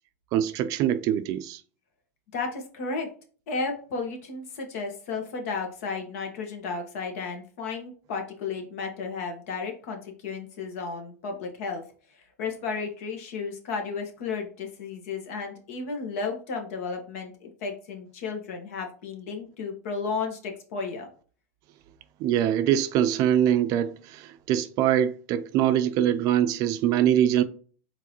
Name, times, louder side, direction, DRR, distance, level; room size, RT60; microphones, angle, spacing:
voice 1, 0.3-1.6 22.2-27.4, right 10 dB, 50° right, 0.5 m, -23 dB
voice 2, 2.3-3.1 3.5-11.8 12.4-21.1, left 4 dB, 70° left, 1.5 m, -33 dB
4.6 x 3.9 x 3.0 m
supercardioid pair, 115°, 8 cm